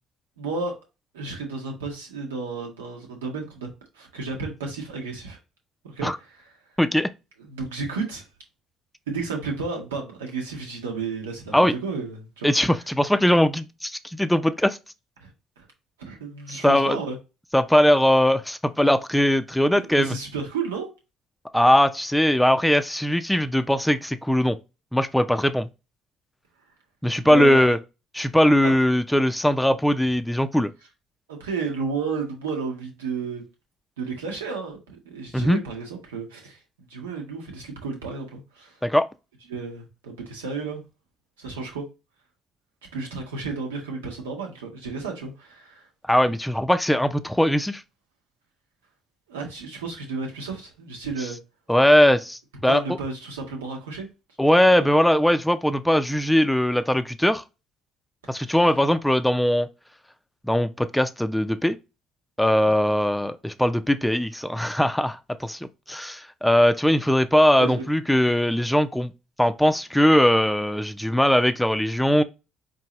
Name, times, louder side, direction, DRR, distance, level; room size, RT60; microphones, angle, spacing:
voice 1, 0.4-0.8 1.1-3.7 3.9-5.4 5.9-6.5 7.4-8.3 9.1-12.8 15.2-15.3 15.6-15.7 16.0-17.2 19.7-20.9 27.2-27.7 28.6-28.7 31.3-33.4 34.0-36.6 36.9-38.8 39.5-40.8 41.4-41.9 42.9-45.9 49.3-51.4 52.7-54.1 67.6-67.8, right 4 dB, 90° right, 1.1 m, -32 dB
voice 2, 6.8-7.1 11.5-11.7 12.4-14.8 16.5-17.0 17.5-20.1 21.5-24.6 24.9-25.7 27.0-27.8 28.2-30.7 35.3-35.6 38.8-39.1 46.1-47.8 51.7-52.8 54.4-57.4 58.3-59.7 60.5-61.8 62.4-65.6 65.9-69.1 69.4-72.2, left 1 dB, 5° left, 0.5 m, -20 dB
4.6 x 2.7 x 3.0 m
hypercardioid pair, 60°, 0 cm